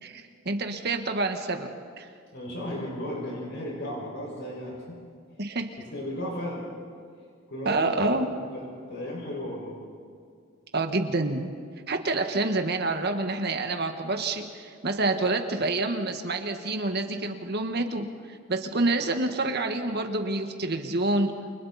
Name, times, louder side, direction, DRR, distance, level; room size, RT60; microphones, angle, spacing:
voice 1, 0.0-2.1 5.4-5.8 7.6-8.3 10.7-11.5 11.9-21.3, right 2 dB, 55° right, 5 dB, 1.6 m, -28 dB
voice 2, 2.3-5.0 5.9-6.6 7.5-8.1 8.5-9.7, left 1 dB, 60° left, -2 dB, 5.9 m, -35 dB
29.5 x 28.5 x 4.3 m, 2.2 s
head